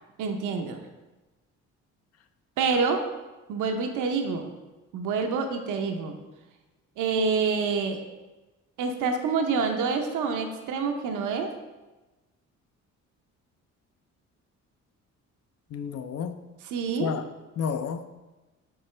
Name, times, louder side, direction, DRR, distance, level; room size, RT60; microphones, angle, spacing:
voice 1, 0.2-0.8 2.6-3.0 3.5-4.5 4.9-6.2 7.0-8.0 8.8-11.5 16.6-17.1, right 5 dB, 85° right, 5 dB, 0.7 m, -27 dB
voice 2, 15.7-16.4 17.0-17.2 17.6-18.2, left 6 dB, 55° left, 10 dB, 0.5 m, -31 dB
6.8 x 4.4 x 3.2 m, 1.1 s
cardioid pair, 90°, 30 cm